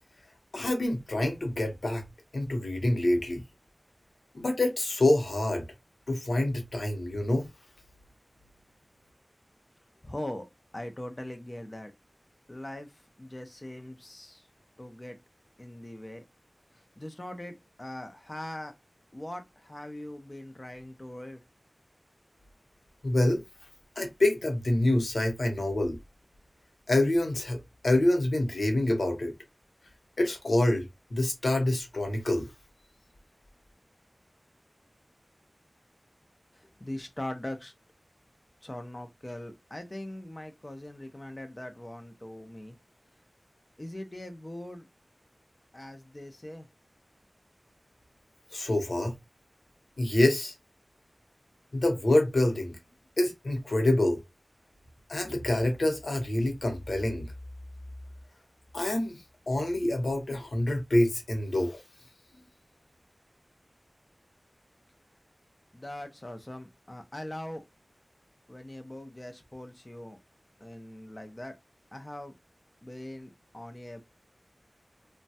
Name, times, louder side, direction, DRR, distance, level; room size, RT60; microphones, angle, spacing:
voice 1, 0.5-2.1 2.3-3.4 4.3-5.6 6.1-7.5 23.0-23.4 24.0-26.0 26.9-27.6 27.8-29.3 30.2-30.8 31.1-32.5 48.5-49.1 50.0-50.5 51.7-52.8 53.2-54.2 55.1-57.3 58.7-59.2 59.5-61.8, left 1 dB, 85° left, 0.8 m, -26 dB
voice 2, 10.0-10.5 10.7-11.9 12.5-14.5 14.8-15.2 15.6-16.2 16.7-18.7 19.1-21.4 36.5-37.7 38.6-42.8 43.8-44.9 45.7-46.7 65.7-67.6 68.5-70.2 70.6-71.6 71.9-72.3 72.8-74.0, left 1 dB, 30° left, 0.5 m, -41 dB
3.1 x 2.2 x 2.7 m
wide cardioid pair, 65°, 0 cm